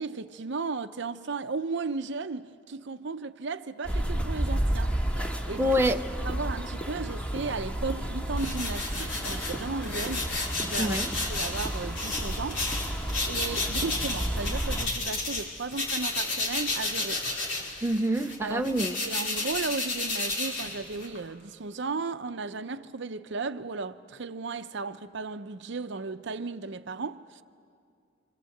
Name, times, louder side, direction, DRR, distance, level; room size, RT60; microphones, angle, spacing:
voice 1, 0.0-5.0 5.5-5.7 6.3-10.3 10.6-11.0 11.3-12.6 12.9-17.3 18.4-18.7 19.0-27.4, right 4 dB, 65° right, 0.7 m, -35 dB
sound 1, 3.8-14.9, right 1 dB, 5° left, 2.1 m, -32 dB
voice 2, 5.6-6.0 10.8-11.1 17.8-19.0, equal, 10° right, 0.7 m, -26 dB
sound 2, 8.4-15.5 15.7-21.2, left 3 dB, 80° left, 5.2 m, -32 dB
27.5 x 26.5 x 7.9 m
head